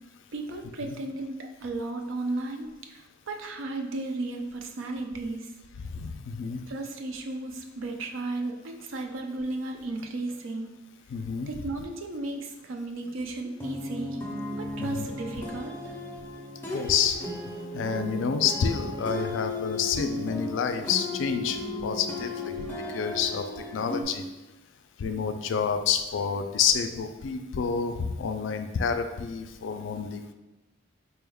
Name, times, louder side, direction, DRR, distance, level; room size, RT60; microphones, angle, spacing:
voice 1, 0.3-5.5 6.7-10.8 11.5-14.2 14.6-15.9, right 2 dB, 75° right, 4 dB, 0.5 m, -34 dB
voice 2, 5.8-6.6 11.1-11.5 14.8-15.1 16.7-17.2 17.7-24.2 25.0-30.3, left 6 dB, 65° left, 8 dB, 0.3 m, -29 dB
sound 1, 13.6-24.0, left 2 dB, 10° left, 0.5 m, -35 dB
4.2 x 2.3 x 3.4 m, 1.0 s
head